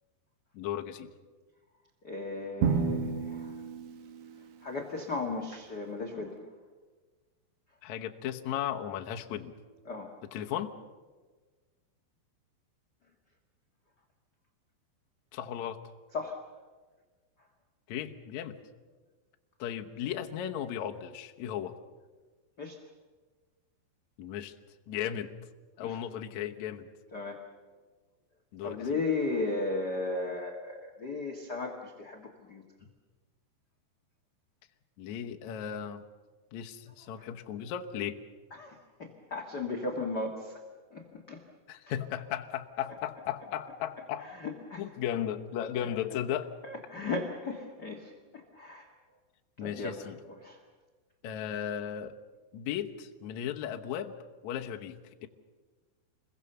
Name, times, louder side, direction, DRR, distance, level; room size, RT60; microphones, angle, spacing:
voice 1, 0.5-1.1 7.8-9.5 10.3-10.7 15.3-15.8 17.9-18.6 19.6-21.7 24.2-24.5 24.9-25.3 25.8-26.9 28.5-29.0 35.0-36.0 36.5-38.2 41.7-44.3 44.8-46.5 49.6-50.1 51.2-52.1 52.5-54.1 54.4-55.0, left 10 dB, 85° left, 4 dB, 1.6 m, -36 dB
voice 2, 2.0-3.5 4.6-6.4 9.8-10.1 16.1-16.4 22.6-22.8 25.8-26.0 27.1-27.4 28.6-32.6 37.1-37.3 38.5-40.6 40.9-41.4 44.2-44.9 45.8-45.9 46.6-48.9 49.6-50.0 50.3-50.6, left 3 dB, 60° left, 2 dB, 1.0 m, -36 dB
Drum, 2.6-4.6, right 5 dB, 80° right, 3.9 m, -31 dB
27.5 x 21.5 x 6.9 m, 1.4 s
omnidirectional pair, 5.0 m